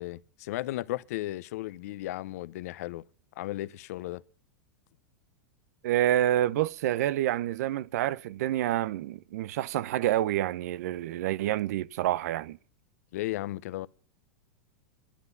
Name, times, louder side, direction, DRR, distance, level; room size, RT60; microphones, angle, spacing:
voice 1, 0.0-3.0 3.4-4.2 13.1-13.9, left 16 dB, 65° left, 0.7 m, -35 dB
voice 2, 5.8-12.6, right 13 dB, 70° right, 0.6 m, -28 dB
11.5 x 10.0 x 6.9 m
supercardioid pair, 150°, 9 cm